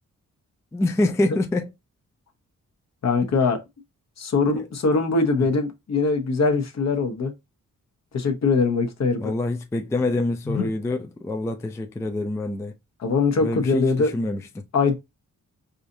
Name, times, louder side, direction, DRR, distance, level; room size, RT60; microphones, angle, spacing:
voice 1, 0.7-1.7 4.5-4.7 9.2-12.7 13.4-14.6, left 2 dB, 10° left, 0.3 m, -26 dB
voice 2, 3.0-3.6 4.2-7.3 8.1-9.3 10.5-10.7 13.0-14.1 14.7-14.9, left 4 dB, 55° left, 0.9 m, -22 dB
4.8 x 2.6 x 2.7 m
wide cardioid pair, 130°, 32 cm